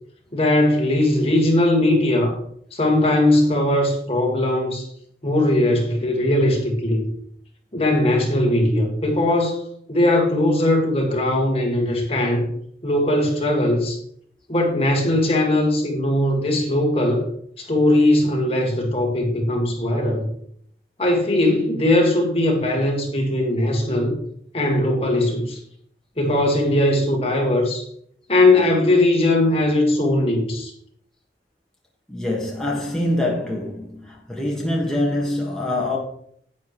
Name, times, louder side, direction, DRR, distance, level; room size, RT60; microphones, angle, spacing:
voice 1, 0.3-2.4 2.7-4.9 5.2-7.1 7.7-9.6 9.9-12.4 12.8-14.0 14.5-17.3 17.6-20.3 21.0-24.1 24.5-25.6 26.2-27.9 28.3-30.7, left 1 dB, 35° left, 2.0 m, -19 dB
voice 2, 32.1-36.0, left 1 dB, 5° left, 1.8 m, -24 dB
10.5 x 9.5 x 3.2 m
head